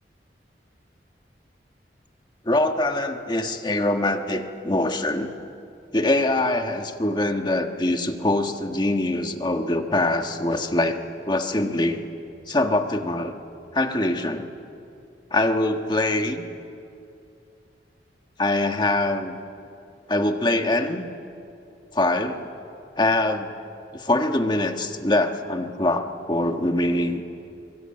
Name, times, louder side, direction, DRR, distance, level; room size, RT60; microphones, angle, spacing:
voice 1, 2.4-5.3 5.9-11.0 11.3-12.1 12.5-13.4 13.7-14.5 15.3-16.4 18.4-19.4 20.1-21.1 21.9-22.5 23.0-23.5 23.9-27.2, left 2 dB, 25° left, 5 dB, 1.5 m, -23 dB
24.5 x 24.0 x 8.9 m, 2.6 s
head